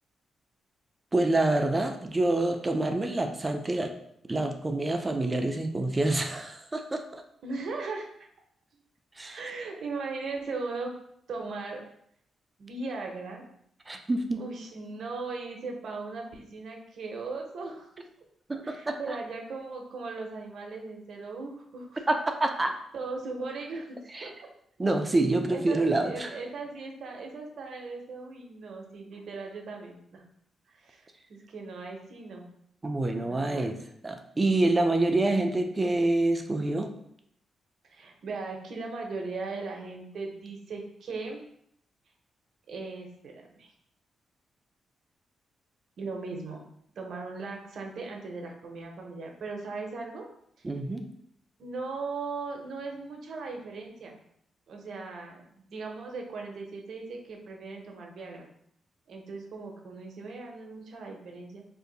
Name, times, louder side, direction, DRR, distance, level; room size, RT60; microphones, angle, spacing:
voice 1, 1.1-3.9 4.3-7.2 9.2-9.4 13.9-14.5 18.5-19.2 22.1-22.8 24.1-24.3 24.8-26.3 32.8-33.7 34.0-36.9 50.6-51.1, right 2 dB, 25° right, 5 dB, 0.4 m, -27 dB
voice 2, 7.4-8.3 9.3-10.9 11.3-11.8 12.6-13.4 14.4-17.9 18.6-22.1 22.9-24.3 25.0-25.2 25.5-30.2 30.8-32.4 33.2-33.7 37.9-41.4 42.7-43.7 46.0-46.6 47.0-50.2 51.6-54.2 54.7-58.5 59.1-61.6, right 3 dB, 70° right, 1 dB, 0.7 m, -38 dB
2.7 x 2.4 x 3.8 m, 0.70 s
cardioid pair, 90°, 0 cm